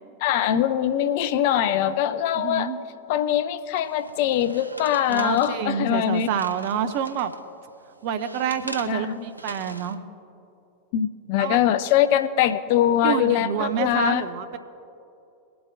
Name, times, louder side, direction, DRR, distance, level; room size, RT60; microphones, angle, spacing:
voice 1, 0.2-2.7 3.1-6.3 8.9-9.2 10.9-14.3, left 10 dB, 50° left, 12 dB, 0.4 m, -22 dB
voice 2, 1.5-1.9 2.3-2.8 5.1-7.3 8.0-10.0 11.4-11.6 13.0-14.6, right 8 dB, 50° right, 10 dB, 0.7 m, -28 dB
sound 1, 3.7-7.4 7.9-10.0, right 1 dB, 85° right, 0.6 m, -41 dB
23.0 x 7.8 x 2.6 m, 2.7 s
figure-of-eight pair, 90°, 0 cm